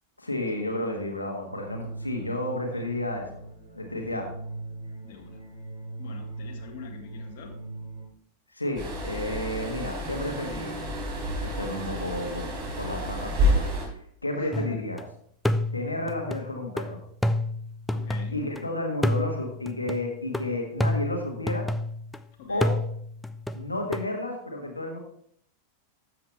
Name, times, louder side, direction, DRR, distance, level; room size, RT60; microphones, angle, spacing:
voice 1, 0.2-3.3 3.7-4.3 8.5-10.8 11.4-15.0 15.7-17.0 18.3-21.7 22.5-22.7 23.5-25.0, left 1 dB, 80° left, 2 dB, 1.6 m, -32 dB
sound 1, 1.4-8.0, right 3 dB, 80° right, 3.6 m, -40 dB
voice 2, 5.0-5.4 6.0-7.6 14.4-14.8 17.9-18.4 22.4-22.7, left 7 dB, 50° left, 2 dB, 1.8 m, -44 dB
sound 2, 8.8-13.8, equal, 40° right, 4.2 m, -29 dB
sound 3, 14.5-15.0 15.4-18.6 19.0-22.2 22.6-24.1, left 1 dB, 5° left, 0.6 m, -29 dB
13.0 x 7.8 x 3.4 m, 0.65 s
figure-of-eight pair, 90°, 0 cm